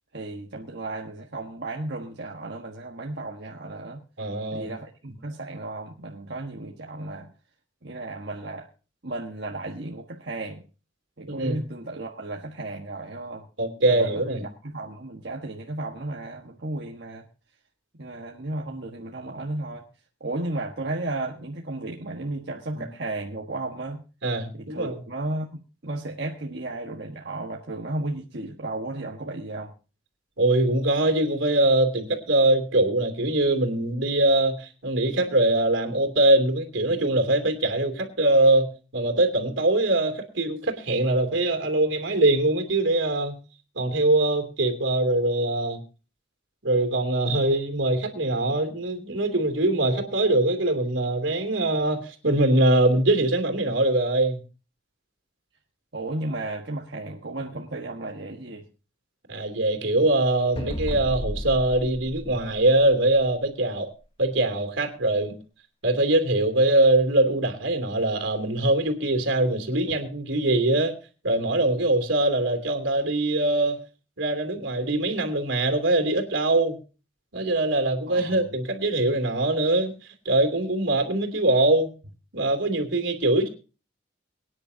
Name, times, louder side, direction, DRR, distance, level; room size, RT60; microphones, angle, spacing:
voice 1, 0.1-4.0 4.5-7.3 7.8-8.7 9.0-10.6 11.2-13.5 13.9-17.3 18.0-19.8 20.2-24.0 24.5-25.5 25.8-29.7 55.9-58.6 69.9-70.0 78.1-78.5, right 2 dB, 60° right, -1 dB, 1.4 m, -34 dB
voice 2, 4.2-4.7 11.3-11.6 13.6-14.5 22.7-22.8 24.2-25.0 30.4-43.3 43.7-45.8 46.6-54.4 59.3-63.9 64.2-65.3 65.8-70.9 71.2-73.8 74.2-76.8 77.3-79.9 80.2-81.9 82.3-83.5, right 2 dB, 80° right, 6 dB, 2.9 m, -22 dB
sound 1, 60.6-63.3, left 1 dB, 30° left, 1.1 m, -33 dB
23.5 x 10.0 x 2.8 m, 0.34 s
head